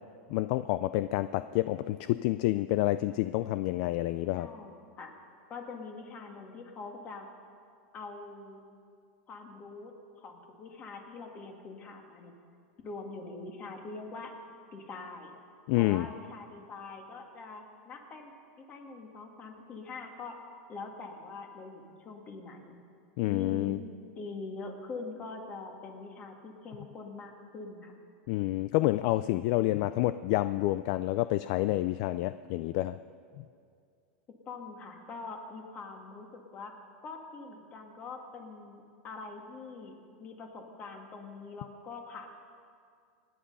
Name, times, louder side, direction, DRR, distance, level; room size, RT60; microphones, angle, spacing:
voice 1, 0.3-4.5 15.7-16.1 23.2-23.8 28.3-33.0 33.4-33.5, left 16 dB, 50° left, 13 dB, 0.4 m, -28 dB
voice 2, 4.3-5.1 5.5-7.3 7.9-8.6 9.3-12.4 12.8-14.3 14.7-15.3 15.8-20.4 20.7-22.8 23.3-23.8 24.2-28.0 34.5-36.8 37.0-42.3, left 3 dB, 25° left, 3 dB, 2.1 m, -44 dB
25.5 x 10.0 x 5.5 m, 2.3 s
supercardioid pair, 150°, 5 cm